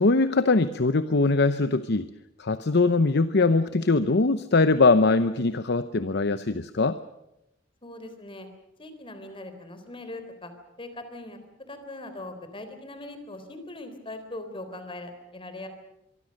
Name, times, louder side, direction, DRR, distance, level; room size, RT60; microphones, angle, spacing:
voice 1, 0.0-2.1 2.4-7.0, left 3 dB, 60° left, 12 dB, 0.8 m, -22 dB
voice 2, 7.8-8.5 8.8-10.5 10.8-15.7, left 2 dB, 30° left, 9 dB, 3.7 m, -40 dB
25.0 x 23.5 x 6.5 m, 0.85 s
head